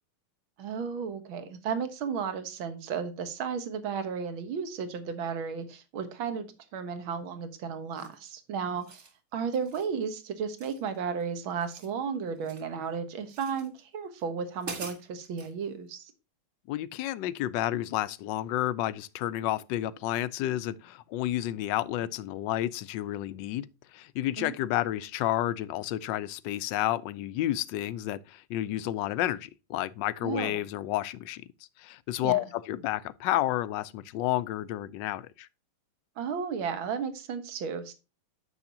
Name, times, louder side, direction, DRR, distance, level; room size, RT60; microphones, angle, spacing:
voice 1, 0.6-16.1 24.4-24.5 30.2-30.6 32.2-32.4 36.2-37.9, right 6 dB, 70° right, 2.0 m, -34 dB
sound 1, 7.9-8.3 8.7-9.1 9.5-9.9 10.6-11.2 11.5-12.7 13.3-13.7 14.2-14.3 14.6-15.5, right 4 dB, 35° right, 1.9 m, -45 dB
voice 2, 16.7-23.7 23.9-31.4 31.8-35.5, left 14 dB, 70° left, 1.1 m, -31 dB
9.7 x 7.3 x 2.8 m
omnidirectional pair, 2.4 m